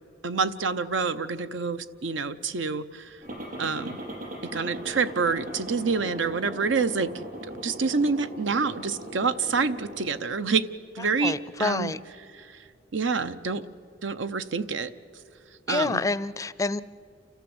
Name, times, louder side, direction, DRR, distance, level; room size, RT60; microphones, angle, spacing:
voice 1, 0.2-3.2 3.6-4.0 4.5-7.1 7.6-10.7 10.9-11.9 12.3-12.6 12.9-13.7 14.0-14.9 15.7-16.0, right 4 dB, 90° right, 12 dB, 0.8 m, -27 dB
sound 1, 3.2-10.2, right 1 dB, 50° right, 5.2 m, -39 dB
voice 2, 11.2-12.0 15.7-16.8, left 3 dB, 15° left, 17 dB, 0.4 m, -27 dB
29.0 x 13.5 x 7.9 m, 2.5 s
head